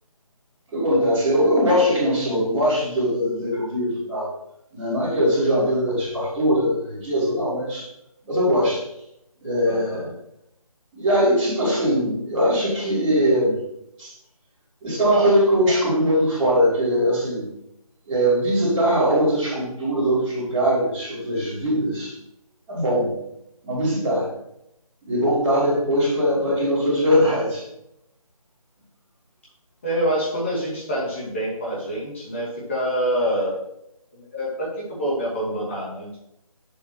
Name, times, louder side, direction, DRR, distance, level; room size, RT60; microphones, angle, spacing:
voice 1, 0.7-4.3 4.7-7.9 8.3-8.8 9.4-10.0 10.9-13.6 14.0-14.1 14.8-17.5 18.0-22.1 22.7-23.1 23.6-24.3 25.0-27.6, equal, 5° right, -16 dB, 3.0 m, -21 dB
voice 2, 9.7-10.1 29.8-33.6 34.1-36.2, equal, 20° left, -7 dB, 2.4 m, -26 dB
8.9 x 7.3 x 3.0 m, 0.81 s
figure-of-eight pair, 175°, 19 cm